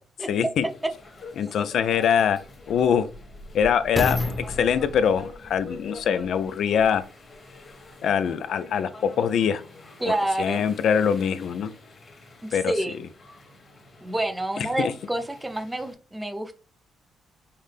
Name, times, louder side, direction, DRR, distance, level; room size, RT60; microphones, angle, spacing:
voice 1, 0.3-0.7 1.4-2.4 2.7-3.1 3.5-7.0 8.0-9.6 10.1-11.7 12.5-12.7 14.8-14.9, left 7 dB, 70° left, 0.4 m, -23 dB
sound 1, 0.6-15.9, left 3 dB, 40° left, 1.4 m, -47 dB
sound 2, 0.9-1.0 1.7-7.0 7.7-7.8, left 2 dB, 15° left, 0.9 m, -33 dB
voice 2, 10.0-10.6 12.6-13.0 14.0-16.6, right 1 dB, 10° right, 0.6 m, -28 dB
5.6 x 2.1 x 3.3 m
cardioid pair, 90°, 0 cm